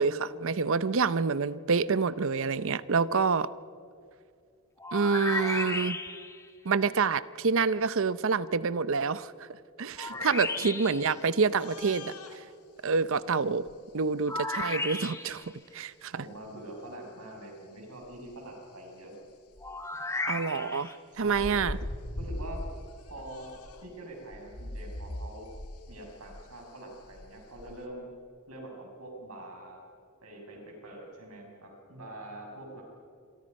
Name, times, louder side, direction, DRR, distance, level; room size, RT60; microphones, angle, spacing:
voice 1, 0.0-3.5 4.9-6.0 6.6-9.3 9.8-12.1 12.8-13.7 13.9-15.4 15.7-16.1 20.3-21.8, right 5 dB, 60° right, 17 dB, 0.7 m, -27 dB
sound 1, 4.8-6.4 10.0-11.1 14.3-15.5 19.6-20.9, left 2 dB, 15° left, 1.4 m, -34 dB
voice 2, 10.1-10.7 16.1-19.1 21.1-21.6 22.2-22.6 23.1-23.5 23.8-25.5 25.9-28.1 28.5-29.8 30.2-32.8, right 1 dB, 80° right, 0 dB, 6.9 m, -45 dB
sound 2, 11.5-12.4 13.7-13.8 15.4-15.5 16.5-16.6 18.0-18.3 18.8-18.9 19.3-19.8 21.1-23.9 24.3-27.8, left 1 dB, 90° left, 2.1 m, -41 dB
28.5 x 23.0 x 5.4 m, 2.4 s
head